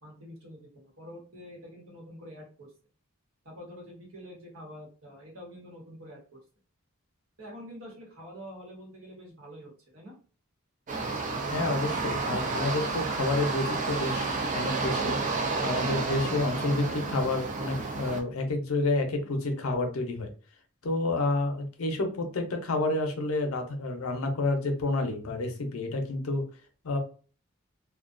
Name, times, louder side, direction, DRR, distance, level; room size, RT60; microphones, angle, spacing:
voice 1, 0.0-2.7 3.4-6.2 7.4-10.1, equal, 70° right, -2 dB, 1.1 m, -46 dB
sound 1, 10.9-18.2, right 3 dB, 35° right, 0.4 m, -31 dB
voice 2, 11.5-15.2 15.6-20.3 20.8-26.5 26.8-27.0, left 2 dB, 75° left, 5 dB, 0.6 m, -29 dB
2.4 x 2.2 x 2.4 m, 0.39 s
head